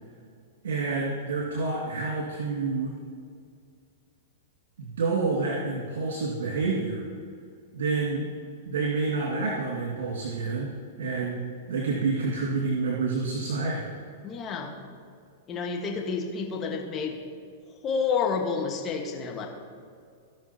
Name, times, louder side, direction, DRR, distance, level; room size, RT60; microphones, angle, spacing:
voice 1, 0.6-2.9 4.8-7.0 7.7-8.3 8.7-10.7 11.0-11.4 11.7-13.9, right 4 dB, 70° right, -4 dB, 2.2 m, -28 dB
voice 2, 14.2-14.7 15.5-17.2 17.8-19.5, left 5 dB, 30° left, 1 dB, 1.6 m, -29 dB
17.5 x 5.9 x 2.9 m, 2.2 s
hypercardioid pair, 105°, 0 cm